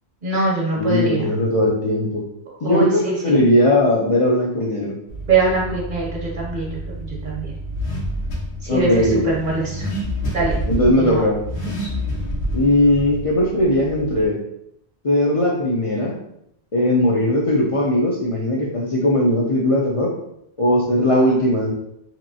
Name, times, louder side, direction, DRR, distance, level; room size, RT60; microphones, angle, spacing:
voice 1, 0.2-1.3 2.6-3.4 5.3-6.8 7.1-7.5 8.6-9.9 10.3-10.6 11.0-11.2, right 3 dB, 55° right, -3 dB, 0.9 m, -23 dB
voice 2, 0.7-2.2 2.6-5.0 8.7-9.2 10.7-11.4 12.5-14.4 15.0-16.2 16.7-20.1 20.6-21.7, left 1 dB, 45° left, -3 dB, 0.5 m, -18 dB
Car / Accelerating revving vroom, 5.1-14.3, equal, 90° left, 1.2 m, -28 dB
3.1 x 2.9 x 2.6 m, 0.77 s
omnidirectional pair, 1.1 m